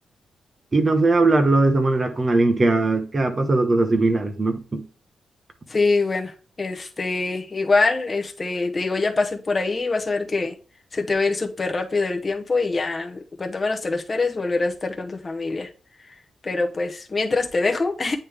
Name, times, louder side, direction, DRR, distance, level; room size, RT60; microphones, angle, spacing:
voice 1, 0.7-4.8, right 2 dB, 25° right, 0.8 m, -19 dB
voice 2, 5.7-6.3 6.6-10.5 10.9-15.7 16.4-18.2, left 3 dB, 25° left, 0.9 m, -24 dB
8.7 x 3.2 x 3.4 m
wide cardioid pair, 145°, 0 cm